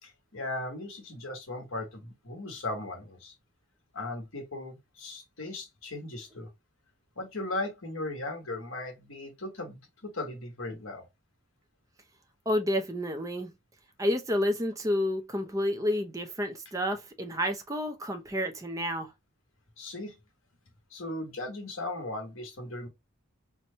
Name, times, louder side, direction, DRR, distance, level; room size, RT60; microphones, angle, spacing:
voice 1, 0.0-3.3 3.9-6.5 7.2-11.1 19.8-20.2 20.9-22.9, left 2 dB, 65° left, 1.5 m, -37 dB
voice 2, 12.5-13.5 14.0-19.1, left 1 dB, 15° right, 0.5 m, -30 dB
4.4 x 2.2 x 2.7 m
head